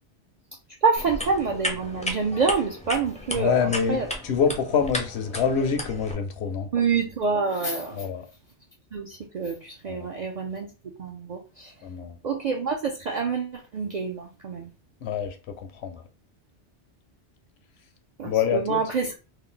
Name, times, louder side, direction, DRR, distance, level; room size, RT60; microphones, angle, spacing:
voice 1, 0.8-3.6 3.9-4.1 6.7-8.0 8.9-10.7 11.0-11.7 12.2-14.7 18.2-19.2, right 5 dB, 50° right, 0.5 m, -27 dB
sound 1, 0.9-6.1, left 1 dB, 10° left, 0.4 m, -34 dB
voice 2, 3.3-6.7 7.9-8.3 9.9-10.1 11.8-12.2 15.0-16.0 18.2-18.8, left 7 dB, 70° left, 0.8 m, -26 dB
3.2 x 2.2 x 3.8 m
omnidirectional pair, 1.2 m